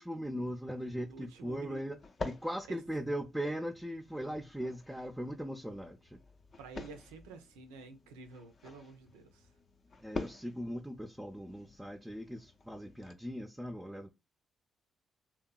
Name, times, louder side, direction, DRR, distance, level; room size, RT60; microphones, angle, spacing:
voice 1, 0.0-6.2 10.0-14.1, equal, 10° right, 0.4 m, -39 dB
sound 1, 0.7-13.1, left 3 dB, 50° left, 0.5 m, -48 dB
voice 2, 1.1-1.8 2.7-2.8 6.6-9.5, right 4 dB, 85° right, 0.4 m, -50 dB
2.8 x 2.2 x 2.2 m
hypercardioid pair, 45°, 0 cm